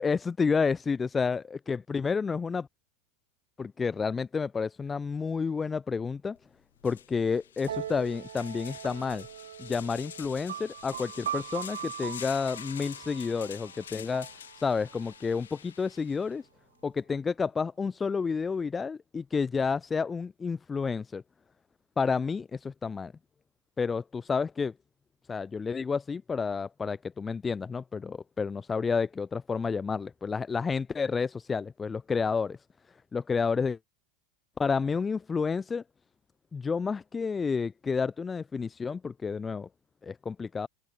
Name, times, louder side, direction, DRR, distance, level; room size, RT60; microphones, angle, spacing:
voice 1, 0.0-2.7 3.6-6.4 6.8-9.3 9.6-14.3 14.6-16.5 16.8-21.2 22.0-23.1 23.8-24.7 25.3-32.6 32.9-33.8 34.6-35.8 36.5-39.7 40.0-40.7, left 5 dB, 20° left, 0.5 m, -30 dB
sound 1, 6.4-6.5 6.8-16.4, left 10 dB, 70° left, 1.1 m, -47 dB
sound 2, 7.6-15.2, right 10 dB, 65° right, 0.6 m, -41 dB
open air
figure-of-eight pair, 85°, 0 cm